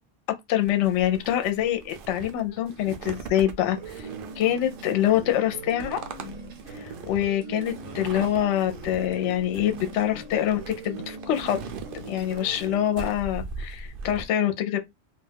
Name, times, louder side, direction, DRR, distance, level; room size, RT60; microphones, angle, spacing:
voice 1, 0.5-4.1 4.4-6.0 6.8-11.6 12.1-14.8, left 11 dB, 70° left, 0.8 m, -25 dB
sound 1, 0.6-14.3, right 4 dB, 60° right, 0.6 m, -40 dB
sound 2, 3.6-12.9, right 4 dB, 80° right, 1.1 m, -41 dB
2.4 x 2.2 x 3.3 m
omnidirectional pair, 1.3 m